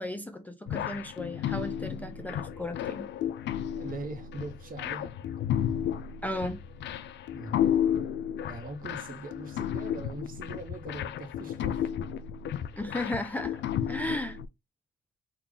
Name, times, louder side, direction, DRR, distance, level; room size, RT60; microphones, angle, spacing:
voice 1, 0.0-3.1 6.2-6.6 12.7-13.6 13.9-14.4, left 1 dB, 10° left, 0.5 m, -35 dB
sound 1, 0.7-14.4, left 9 dB, 65° left, 0.4 m, -32 dB
voice 2, 3.7-5.2 7.3-7.7 8.5-11.9, right 2 dB, 45° right, 1.0 m, -41 dB
3.5 x 2.3 x 3.8 m
cardioid pair, 90°, 20 cm